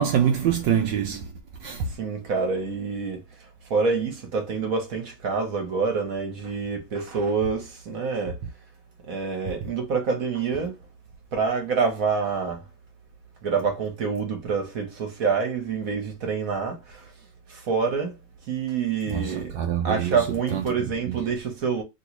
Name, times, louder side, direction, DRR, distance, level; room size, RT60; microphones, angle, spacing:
voice 1, 0.0-1.3 1.6-1.9 19.1-20.2 20.5-20.6 21.1-21.2, right 8 dB, 75° right, 1.2 m, -25 dB
voice 2, 2.0-3.2 3.7-8.4 9.1-10.8 11.3-12.6 13.4-16.8 17.5-18.1 18.5-19.5 19.8-21.8, right 5 dB, 50° right, 1.2 m, -26 dB
3.0 x 3.0 x 3.0 m
omnidirectional pair, 2.2 m